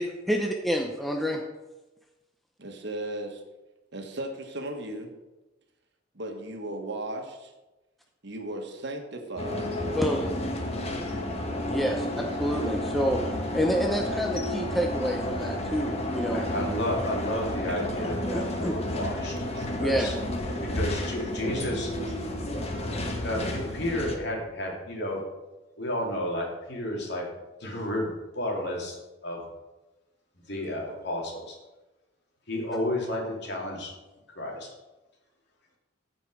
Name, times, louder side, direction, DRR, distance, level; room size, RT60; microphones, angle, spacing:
voice 1, 0.0-1.4 9.9-10.3 11.7-12.1 12.4-13.2 13.5-16.4 18.3-18.8 19.8-20.1, equal, ahead, 1 dB, 0.7 m, -28 dB
voice 2, 2.6-3.4 3.9-5.1 6.1-7.5 8.2-9.7 11.8-12.1 16.2-16.7 17.7-17.9 19.5-19.7 20.5-21.8, right 1 dB, 65° right, 3 dB, 1.4 m, -37 dB
sound 1, 9.4-24.2, left 1 dB, 35° left, 1.3 m, -31 dB
voice 3, 16.3-19.4 19.8-20.1 20.5-21.9 23.1-25.2 25.8-27.3 27.6-29.0 29.2-29.4 30.5-31.6 32.5-33.9 34.4-34.7, left 1 dB, 60° left, -1 dB, 2.6 m, -31 dB
14.5 x 5.2 x 4.8 m, 1.1 s
head